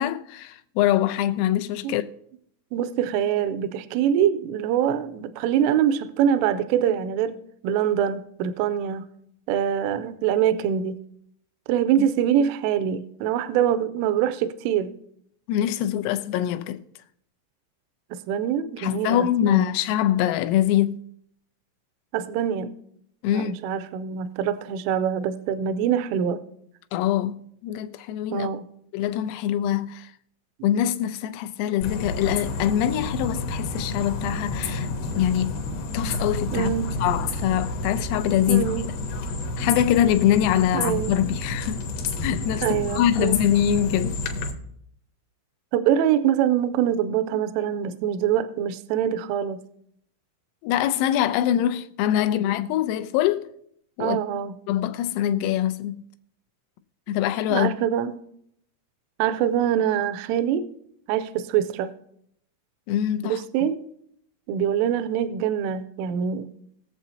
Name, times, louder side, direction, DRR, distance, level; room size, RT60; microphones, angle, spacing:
voice 1, 0.0-2.1 12.0-12.1 15.5-16.8 18.8-21.0 23.2-23.6 26.9-28.5 28.9-30.1 30.6-34.9 35.1-35.5 35.9-36.7 37.0-38.7 39.6-41.8 42.2-44.2 50.6-53.5 54.0-54.2 54.7-56.0 57.1-57.7 62.9-63.4, left 11 dB, 90° left, 3.3 m, -24 dB
voice 2, 2.7-7.4 7.6-9.0 9.5-11.0 11.7-14.9 18.1-19.7 22.1-22.7 23.3-26.4 28.3-28.7 36.5-36.9 38.5-38.9 40.7-41.2 42.6-43.4 45.7-49.6 54.0-54.6 57.5-58.2 59.2-60.7 61.1-61.9 63.2-63.8 64.5-66.5, right 9 dB, 85° right, 3.0 m, -24 dB
sound 1, 31.8-44.5, left 2 dB, 70° left, 2.7 m, -29 dB
21.5 x 7.2 x 2.8 m
omnidirectional pair, 5.9 m